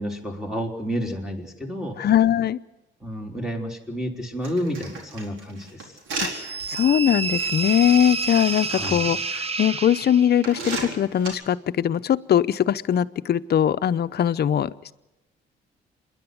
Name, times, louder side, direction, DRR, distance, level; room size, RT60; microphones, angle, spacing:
voice 1, 0.0-2.0 3.0-6.0 8.7-9.1, equal, ahead, 3 dB, 3.8 m, -30 dB
voice 2, 2.0-2.6 6.2-6.3 6.7-14.9, left 10 dB, 55° left, 13 dB, 0.7 m, -21 dB
sound 1, 4.4-6.8 7.3-7.5 8.4-8.9 9.6-9.7 10.4-11.3, right 3 dB, 90° right, 4.3 m, -33 dB
sound 2, 6.3-10.5, right 4 dB, 30° right, 1.0 m, -29 dB
26.5 x 11.0 x 9.6 m, 0.96 s
cardioid pair, 90°, 20 cm